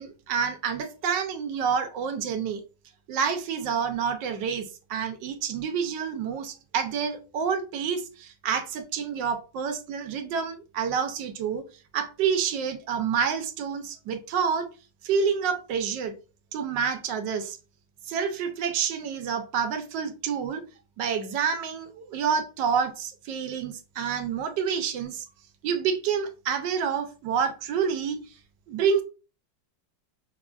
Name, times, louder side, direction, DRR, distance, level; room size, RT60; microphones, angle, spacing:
voice 1, 0.0-2.6 3.1-11.6 11.9-14.7 15.0-16.1 16.5-17.6 18.1-20.6 21.0-25.2 25.6-28.2 28.7-29.0, right 6 dB, 80° right, 1.3 m, -28 dB
5.5 x 2.4 x 2.3 m
omnidirectional pair, 2.0 m